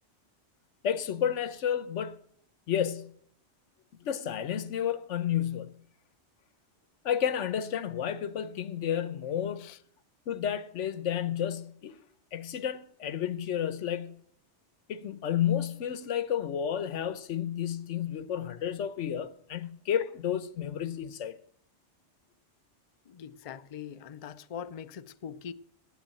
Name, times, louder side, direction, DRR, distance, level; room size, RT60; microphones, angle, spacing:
voice 1, 0.8-2.2 2.7-3.2 4.0-5.8 7.0-9.7 10.3-12.0 12.3-14.2 14.9-21.4, left 9 dB, 85° left, 1.1 m, -31 dB
voice 2, 23.1-25.5, left 8 dB, 55° left, 0.4 m, -42 dB
9.2 x 7.8 x 8.8 m
omnidirectional pair, 1.2 m